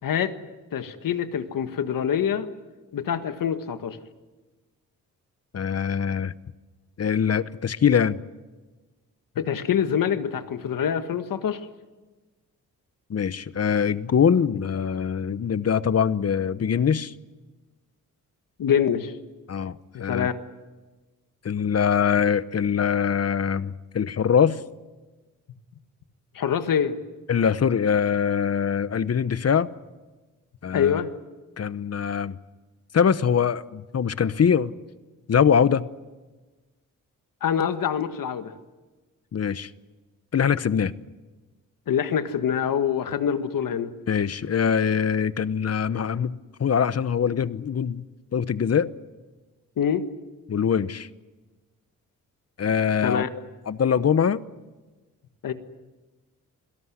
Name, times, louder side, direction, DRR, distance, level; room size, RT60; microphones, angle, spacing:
voice 1, 0.0-0.3 0.7-2.5 2.9-4.0 9.4-11.6 18.6-19.1 19.9-20.3 26.4-27.0 30.7-31.1 37.4-38.5 41.9-43.9 49.8-50.1 53.0-53.3 55.4-55.5, left 8 dB, 75° left, 1.6 m, -25 dB
voice 2, 5.5-6.3 7.0-8.2 13.1-17.1 19.5-20.3 21.4-24.6 27.3-29.7 30.6-31.0 31.6-32.3 32.9-34.7 35.3-35.9 39.3-39.7 40.3-40.9 44.1-48.0 48.3-48.9 50.5-51.1 52.6-53.2 53.7-54.4, left 7 dB, 45° left, 1.0 m, -23 dB
26.5 x 17.5 x 9.7 m
cardioid pair, 70°, 33 cm